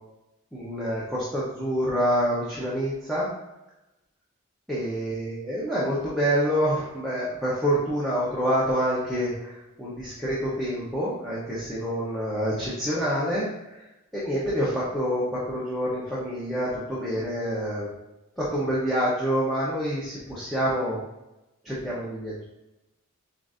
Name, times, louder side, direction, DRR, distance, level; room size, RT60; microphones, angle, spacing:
voice 1, 0.5-3.3 4.7-13.8 14.1-17.9 18.4-21.0 21.6-22.4, equal, ahead, -9 dB, 0.7 m, -27 dB
7.6 x 2.5 x 2.5 m, 0.96 s
head